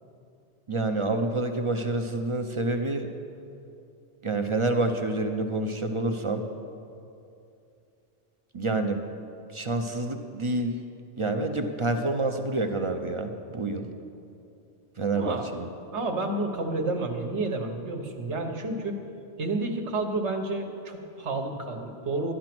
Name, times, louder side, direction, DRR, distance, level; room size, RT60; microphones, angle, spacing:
voice 1, 0.7-3.1 4.2-6.5 8.5-9.0 9.5-10.8 11.2-13.9 15.0-15.7, right 2 dB, 35° right, 6 dB, 0.6 m, -28 dB
voice 2, 15.1-15.5 15.9-19.0 19.4-22.3, right 2 dB, 70° right, 4 dB, 1.4 m, -30 dB
12.5 x 10.5 x 6.0 m, 2.6 s
omnidirectional pair, 1.2 m